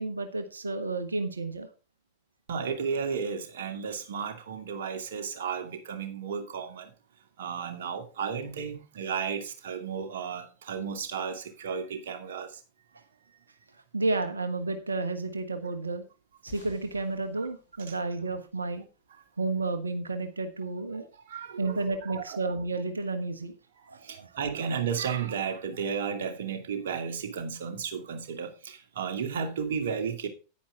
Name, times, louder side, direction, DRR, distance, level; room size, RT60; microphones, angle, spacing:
voice 1, 0.0-1.7 13.9-16.0 16.4-18.8 19.4-21.1 21.6-23.5 23.9-24.3, right 3 dB, 75° right, 1.3 m, -31 dB
voice 2, 2.5-6.9 7.4-12.6 17.9-18.0 21.2-22.4 23.9-30.3, right 6 dB, 60° right, 2.4 m, -33 dB
sound 1, 16.5-19.2, left 5 dB, 80° left, 5.4 m, -55 dB
10.5 x 9.9 x 3.6 m
figure-of-eight pair, 90°, 0 cm